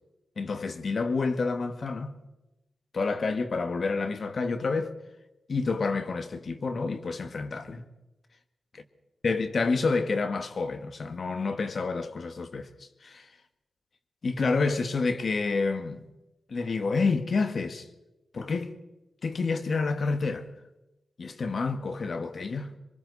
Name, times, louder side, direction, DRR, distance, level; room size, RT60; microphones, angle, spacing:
voice 1, 0.4-2.1 2.9-4.9 5.5-7.8 9.2-12.7 13.0-13.3 14.2-16.0 16.5-17.9 18.3-18.7 19.2-20.5 21.2-22.7, left 4 dB, 65° left, 1.8 m, -28 dB
27.5 x 23.5 x 4.2 m
cardioid pair, 45°, 0 cm